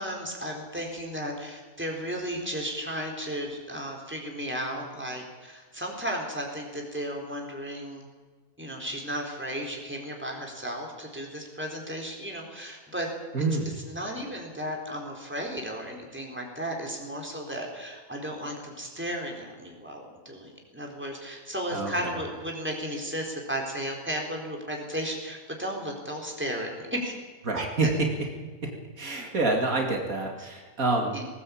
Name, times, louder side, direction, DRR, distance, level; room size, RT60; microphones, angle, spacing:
voice 1, 0.0-8.1 8.6-13.1 13.8-27.1 27.8-27.9 30.4-30.5 31.1-31.2, equal, 5° right, 0 dB, 4.2 m, -34 dB
voice 2, 13.3-13.7 21.7-22.2 27.5-28.1 28.6-28.7 29.0-31.2, right 3 dB, 70° right, 2 dB, 2.9 m, -27 dB
19.0 x 19.0 x 8.7 m, 1.4 s
omnidirectional pair, 1.5 m